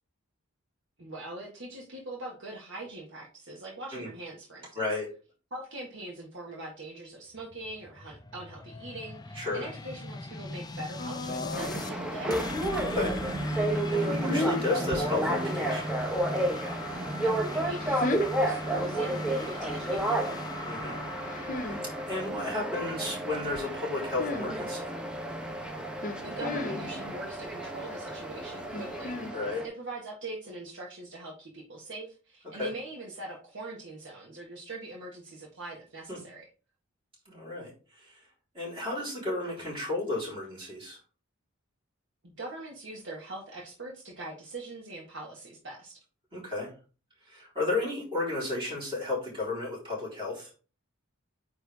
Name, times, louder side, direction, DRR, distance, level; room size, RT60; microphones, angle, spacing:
voice 1, 1.0-4.8 5.5-12.4 17.2-20.4 26.2-29.4 29.6-36.5 42.2-46.0, right 2 dB, 60° right, -1 dB, 1.6 m, -42 dB
voice 2, 4.7-5.1 9.3-9.7 12.7-13.2 13.9-15.9 20.6-21.0 21.6-21.8 22.1-24.9 29.3-29.7 32.5-32.7 36.1-36.2 37.3-37.7 38.0-38.1 38.5-41.0 46.3-46.7 47.3-50.5, left 2 dB, 25° right, -5 dB, 3.9 m, -33 dB
sound 1, 7.3-11.9 12.3-23.9, left 3 dB, 20° left, 0.4 m, -43 dB
sound 2, 11.0-29.3, left 2 dB, 40° left, 0.8 m, -39 dB
sound 3, 11.5-29.7, right 1 dB, 5° right, 0.9 m, -32 dB
9.0 x 3.4 x 3.5 m, 0.34 s
head